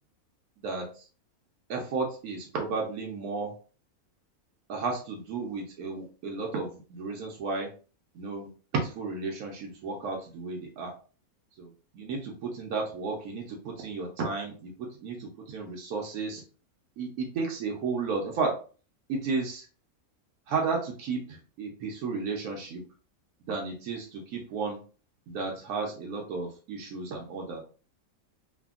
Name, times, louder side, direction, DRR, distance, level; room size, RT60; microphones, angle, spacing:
voice 1, 0.6-1.0 1.7-3.5 4.7-7.7 8.1-10.9 11.6-16.4 17.0-18.6 19.1-19.7 20.5-22.8 23.5-24.8 25.3-27.6, right 4 dB, 80° right, 0 dB, 1.1 m, -33 dB
3.3 x 2.2 x 2.3 m, 0.37 s
omnidirectional pair, 1.5 m